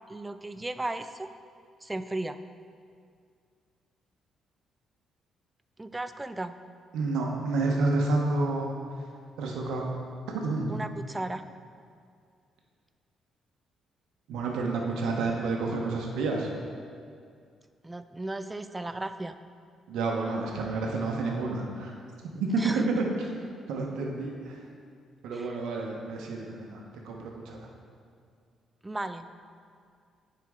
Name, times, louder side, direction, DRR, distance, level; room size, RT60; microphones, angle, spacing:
voice 1, 0.1-1.3 1.8-2.4 5.8-6.6 10.7-11.4 17.8-19.3 22.6-22.9 25.3-25.6 28.8-29.3, right 2 dB, 15° right, 10 dB, 0.3 m, -35 dB
voice 2, 6.9-8.7 9.4-9.9 10.3-10.7 14.3-16.5 19.9-21.9 22.3-22.6 23.0-23.3 23.7-24.6 25.2-27.7, right 3 dB, 85° right, 0 dB, 0.9 m, -30 dB
9.4 x 4.4 x 3.6 m, 2.2 s
cardioid pair, 90°, 0 cm